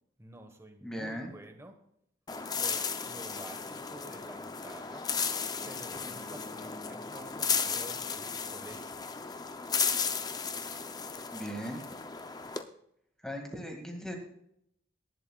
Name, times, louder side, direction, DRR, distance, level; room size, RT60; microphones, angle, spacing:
voice 1, 0.2-1.8 2.3-5.4 5.6-9.0, right 1 dB, 15° right, 5 dB, 1.2 m, -50 dB
voice 2, 0.8-1.3 11.3-11.8 13.2-14.1, equal, 5° left, 2 dB, 2.0 m, -38 dB
sound 1, 2.3-12.6, left 6 dB, 20° left, 0.5 m, -35 dB
18.0 x 11.0 x 2.3 m, 0.73 s
head